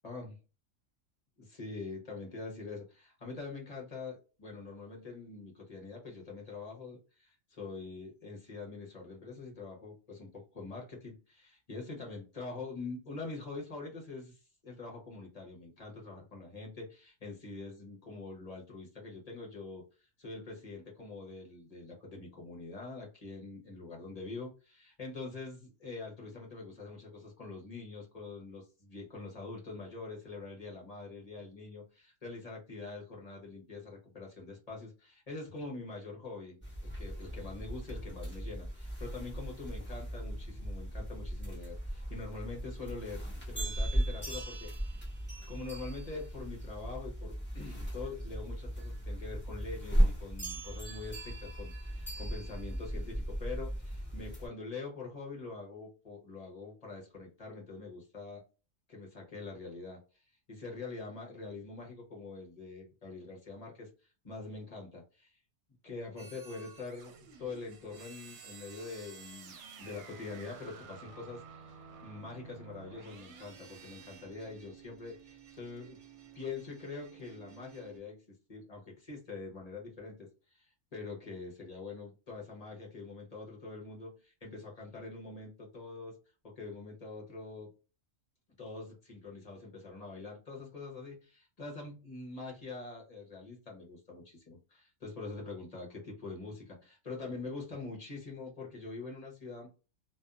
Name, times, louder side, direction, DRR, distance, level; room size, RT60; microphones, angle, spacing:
voice 1, 0.0-0.4 1.4-19.8 20.2-45.1 45.5-58.4 58.9-60.0 60.5-63.9 64.2-65.4 65.8-76.0 76.3-78.2 78.5-86.2 86.4-87.7 88.6-99.7, left 3 dB, 35° left, -1 dB, 0.9 m, -44 dB
sound 1, 36.6-54.5, equal, 10° left, 0.8 m, -36 dB
sound 2, 66.2-78.0, right 6 dB, 70° right, 0.9 m, -53 dB
2.5 x 2.3 x 2.3 m, 0.32 s
omnidirectional pair, 1.3 m